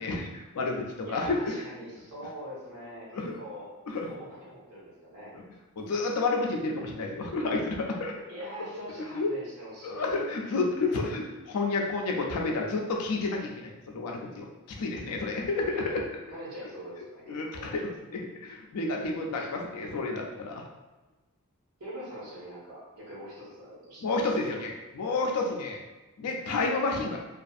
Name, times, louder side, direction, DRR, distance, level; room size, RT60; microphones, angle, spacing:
voice 1, 0.0-1.5 3.1-3.4 3.9-4.1 5.8-8.1 9.1-9.3 9.8-14.5 14.8-16.1 17.3-20.6 24.0-25.8 26.2-27.2, left 3 dB, 85° left, 0 dB, 0.4 m, -30 dB
voice 2, 1.0-3.0 3.3-3.7 4.0-5.3 8.3-10.9 16.3-17.7 19.4-19.7 21.8-24.0 24.5-24.6, right 1 dB, 85° right, -7 dB, 1.1 m, -43 dB
2.5 x 2.4 x 2.4 m, 1.1 s
head